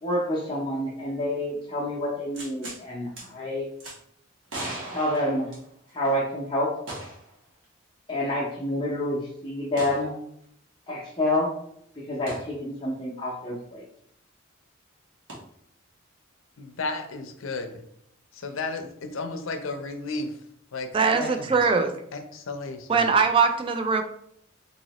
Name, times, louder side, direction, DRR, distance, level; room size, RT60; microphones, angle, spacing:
voice 1, 0.0-3.7 4.9-5.5 5.9-6.7 8.1-10.1 10.9-11.5 12.0-13.8 21.1-21.3, left 1 dB, 25° left, -5 dB, 0.6 m, -28 dB
sound 1, 2.3-2.8 3.2-3.3 3.8-4.0 4.5-6.0 6.9-7.3 7.6-7.7 9.8-10.0 12.3-12.5 15.3-15.4, right 1 dB, 65° right, 1.1 m, -37 dB
voice 2, 16.6-17.8 18.3-20.3 20.7-20.9 21.2-21.4 22.1-23.1, left 3 dB, 75° left, 6 dB, 0.5 m, -33 dB
voice 3, 20.9-22.0 22.9-24.0, right 5 dB, 25° right, 6 dB, 0.3 m, -21 dB
3.8 x 2.8 x 2.9 m, 0.71 s
head